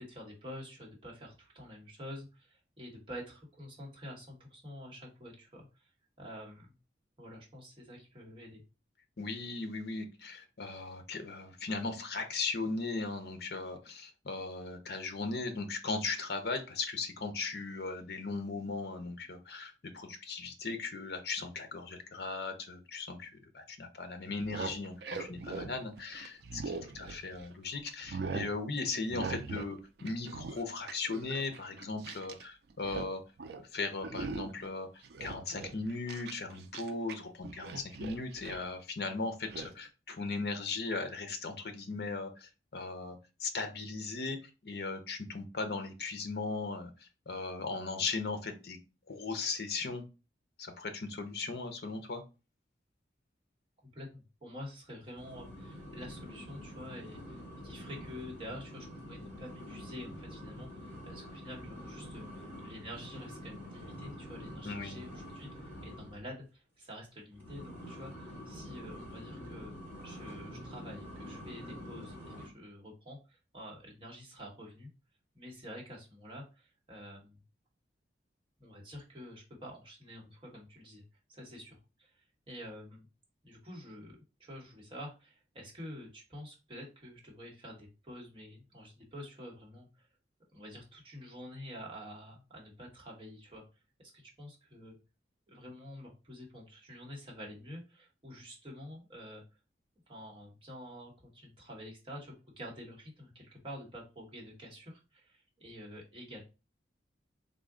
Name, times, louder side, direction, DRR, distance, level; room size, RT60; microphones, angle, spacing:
voice 1, 0.0-5.8 6.2-6.7 7.2-8.6 53.8-69.7 70.0-74.9 75.3-77.4 78.6-81.0 81.3-83.1 83.4-90.1 90.5-93.6 94.0-94.9 95.5-99.4 100.1-106.4, equal, 30° right, -3 dB, 1.1 m, -48 dB
voice 2, 9.2-33.2 33.5-44.4 44.6-48.8 49.1-50.0 50.6-52.2 64.6-65.0, left 3 dB, 60° left, 7 dB, 0.6 m, -38 dB
sound 1, 24.3-27.5 27.9-28.5 29.1-29.7 30.0-32.4 32.7-33.1 33.4-33.6 34.0-34.7 35.0-37.2 37.4-38.7 39.5-39.7, right 4 dB, 60° right, 0.4 m, -41 dB
sound 2, 55.1-66.3 67.3-72.5, equal, 10° left, 1.5 m, -46 dB
3.7 x 2.1 x 3.5 m, 0.30 s
head